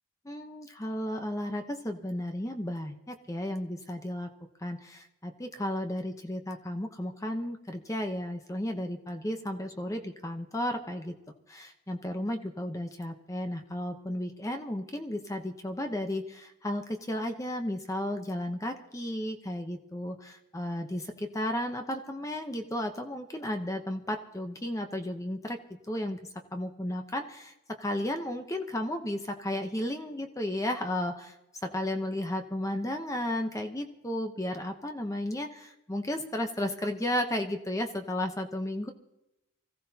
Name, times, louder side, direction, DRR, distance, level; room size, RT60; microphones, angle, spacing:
voice 1, 0.3-4.3 4.6-11.2 11.5-31.3 31.6-38.9, left 1 dB, 15° left, 5 dB, 0.8 m, -34 dB
25.0 x 15.5 x 2.8 m, 0.92 s
head